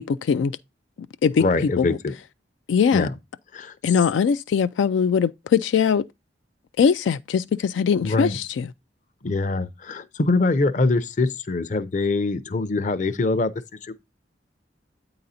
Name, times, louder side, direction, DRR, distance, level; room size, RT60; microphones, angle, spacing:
voice 1, 0.1-0.5 1.2-1.4 1.8-1.9 2.7-3.1 3.8-6.0 6.8-8.7, left 6 dB, 90° left, 0.3 m, -21 dB
voice 2, 1.4-2.1 2.9-3.1 3.5-3.9 8.0-8.4 9.2-13.5 13.8-13.9, left 3 dB, 45° left, 0.6 m, -23 dB
8.6 x 3.9 x 4.1 m
head